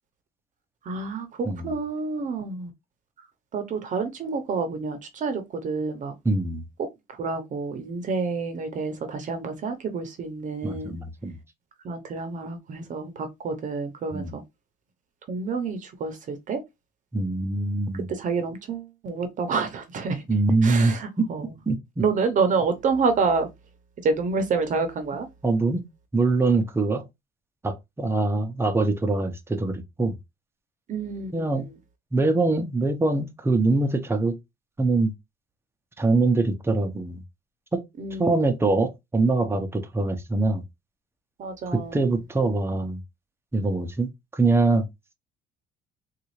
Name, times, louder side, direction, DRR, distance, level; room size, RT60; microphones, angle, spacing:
voice 1, 0.8-2.7 3.5-6.1 6.8-11.0 11.8-14.4 15.3-16.6 17.9-20.3 20.6-21.5 22.0-23.5 24.0-25.3 30.9-31.7 38.0-38.3 41.4-42.1, right 4 dB, 50° right, 0.8 m, -28 dB
voice 2, 6.2-6.6 10.6-11.4 14.1-14.3 17.1-18.1 20.3-21.3 21.7-22.0 25.4-25.8 26.1-27.0 27.6-30.2 31.3-31.7 32.1-34.4 34.8-35.1 36.0-37.2 37.7-37.8 38.2-40.6 41.7-43.0 43.5-44.9, right 3 dB, 15° right, 0.7 m, -23 dB
3.9 x 2.4 x 3.1 m
cardioid pair, 110°, 17 cm